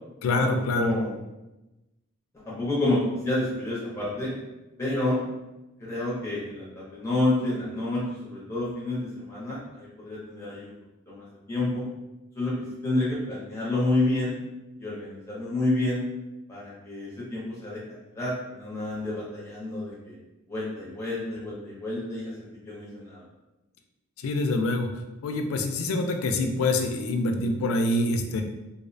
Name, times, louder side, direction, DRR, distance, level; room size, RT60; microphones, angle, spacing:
voice 1, 0.2-0.9 24.2-24.9 25.2-28.4, left 2 dB, 80° left, 5 dB, 0.3 m, -25 dB
voice 2, 0.7-1.2 2.3-4.3 4.8-5.2 5.8-10.7 11.1-11.8 12.3-12.5 12.8-14.3 14.8-16.0 16.5-20.1 20.5-23.2, left 2 dB, 15° left, -7 dB, 0.5 m, -29 dB
2.5 x 2.0 x 2.5 m, 1.0 s
head